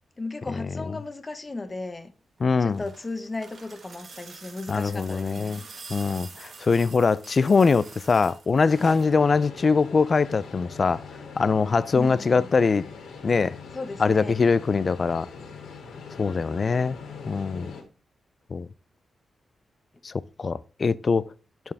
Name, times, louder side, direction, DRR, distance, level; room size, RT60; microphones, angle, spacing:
voice 1, 0.2-2.1 2.6-5.7 11.9-12.5 13.7-14.4, left 3 dB, 30° left, 1.2 m, -35 dB
voice 2, 2.4-2.8 4.7-5.6 5.9-11.0 11.4-12.8 13.2-13.6 14.0-15.3 16.2-17.0 17.3-17.7 18.5-18.7 20.0-20.1 20.4-21.2, left 4 dB, 45° left, 0.5 m, -22 dB
sound 1, 2.4-9.2 10.5-10.6, right 4 dB, 55° right, 1.4 m, -46 dB
sound 2, 8.7-17.8, left 5 dB, 85° left, 2.0 m, -42 dB
11.5 x 4.5 x 3.5 m
cardioid pair, 75°, 0 cm